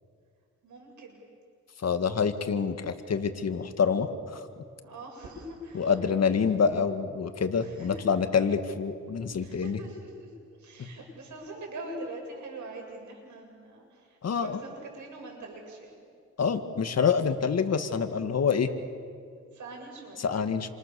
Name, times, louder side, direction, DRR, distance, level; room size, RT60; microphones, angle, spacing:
voice 1, 0.6-1.2 4.8-6.0 7.6-8.0 9.4-10.3 10.6-16.0 19.3-20.2, right 2 dB, 85° right, 1 dB, 7.6 m, -43 dB
voice 2, 1.8-4.4 5.7-9.8 10.8-10.9 14.2-14.6 16.4-18.7 20.2-20.7, left 6 dB, 60° left, 8 dB, 1.9 m, -27 dB
29.0 x 26.5 x 7.0 m, 2.2 s
cardioid pair, 90°, 29 cm